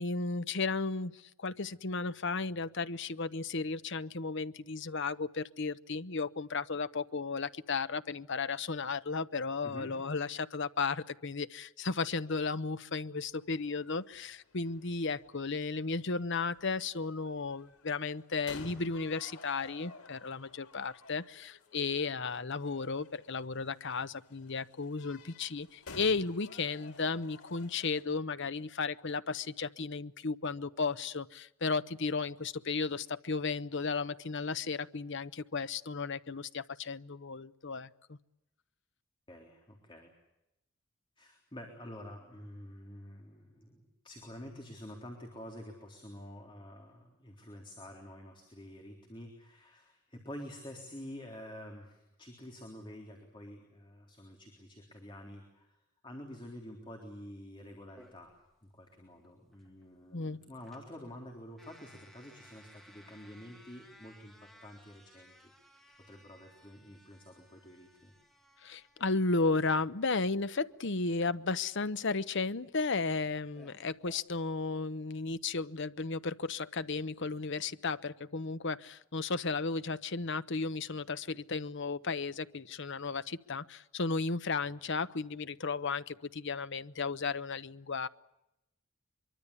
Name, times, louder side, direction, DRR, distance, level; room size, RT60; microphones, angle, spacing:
voice 1, 0.0-38.2 60.1-60.4 68.6-88.1, left 4 dB, 55° left, 14 dB, 0.9 m, -34 dB
sound 1, 13.3-28.0, left 3 dB, 85° left, 4.4 m, -54 dB
voice 2, 39.3-40.1 41.2-55.8 56.0-58.4 58.6-65.3 66.1-68.1, left 1 dB, 20° left, 2 dB, 3.8 m, -48 dB
sound 2, 58.0-74.2, equal, ahead, 2.4 m, -61 dB
24.0 x 23.5 x 8.4 m, 0.88 s
head